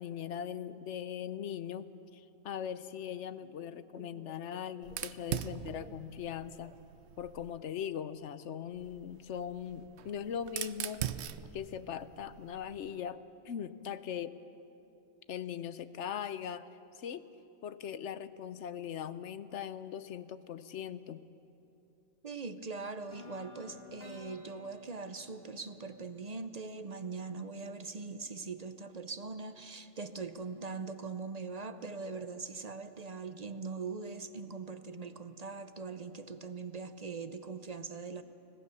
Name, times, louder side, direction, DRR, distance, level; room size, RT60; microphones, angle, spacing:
voice 1, 0.0-6.7 7.2-11.0 11.5-13.2 13.4-14.3 15.3-16.7 16.9-17.3 17.6-21.2, left 8 dB, 75° left, 14 dB, 1.0 m, -40 dB
voice 2, 3.7-4.6 4.9-5.1 5.5-5.9 22.2-38.2, right 4 dB, 40° right, 10 dB, 0.7 m, -42 dB
Fire, 4.8-7.6 8.8-13.0, right 10 dB, 70° right, 0.9 m, -42 dB
sound 1, 23.1-27.1, left 3 dB, 55° left, 2.2 m, -53 dB
25.5 x 18.0 x 7.0 m, 2.9 s
omnidirectional pair, 1.2 m